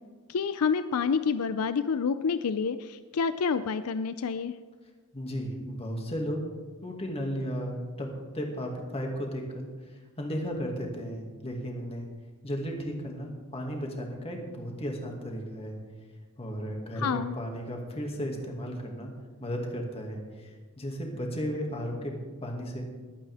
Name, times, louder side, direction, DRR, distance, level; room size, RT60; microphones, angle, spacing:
voice 1, 0.3-4.5 17.0-17.4, left 5 dB, 75° left, 12 dB, 0.5 m, -28 dB
voice 2, 5.1-6.4 6.8-8.1 8.3-9.7 10.2-12.1 12.4-15.8 16.4-19.1 19.4-20.5 20.8-22.1 22.4-22.9, equal, 25° left, 1 dB, 2.2 m, -34 dB
21.5 x 9.0 x 3.6 m, 1.4 s
head